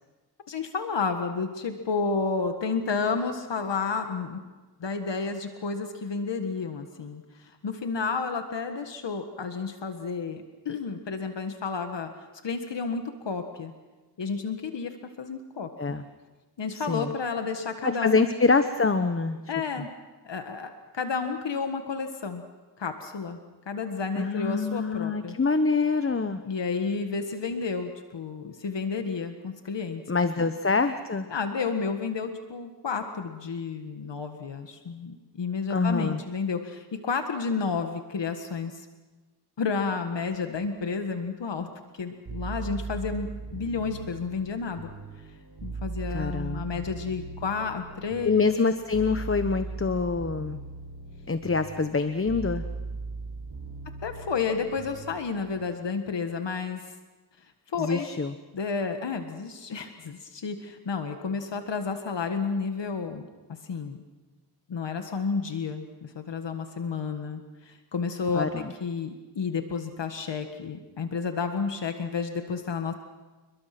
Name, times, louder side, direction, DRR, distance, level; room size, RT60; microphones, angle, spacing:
voice 1, 0.5-4.4 4.8-12.1 12.4-13.7 14.2-15.7 16.6-18.2 19.5-19.9 20.2-22.4 22.8-23.4 23.7-25.3 26.4-30.0 30.4-30.5 31.3-38.9 39.6-41.7 42.0-43.3 43.5-44.9 45.6-48.3 54.0-56.9 57.7-58.1 58.5-63.2 63.6-64.0 64.7-72.9, left 5 dB, 80° left, 6 dB, 1.7 m, -31 dB
voice 2, 16.7-17.1 17.8-19.5 24.2-26.4 30.1-31.3 35.7-36.2 46.1-46.8 48.2-50.6 51.3-52.6 57.8-58.3 68.3-68.7, left 4 dB, 30° left, 9 dB, 1.0 m, -25 dB
sound 1, 42.3-55.6, right 3 dB, 65° right, 6.2 m, -39 dB
29.5 x 21.5 x 6.0 m, 1.2 s
wide cardioid pair, 80°, 42 cm